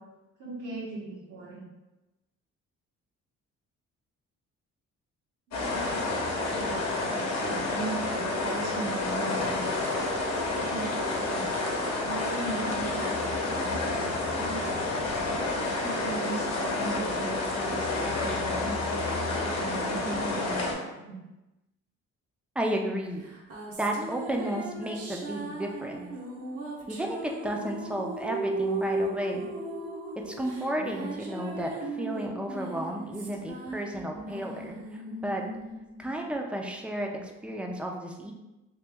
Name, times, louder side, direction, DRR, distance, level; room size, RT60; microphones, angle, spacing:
voice 1, 0.4-1.6 5.5-9.6 10.2-11.4 12.0-14.7 15.3-21.2, right 3 dB, 85° right, -4 dB, 1.3 m, -39 dB
sound 1, 5.5-20.7, left 2 dB, 60° left, 0.9 m, -29 dB
voice 2, 22.6-23.2 23.8-26.1 26.9-29.5 30.3-35.4 36.0-38.3, right 1 dB, 5° right, 1 dB, 0.5 m, -33 dB
sound 2, 23.2-36.9, right 2 dB, 50° right, 0.8 m, -37 dB
3.1 x 2.9 x 3.4 m, 1.0 s
cardioid pair, 90°, 30 cm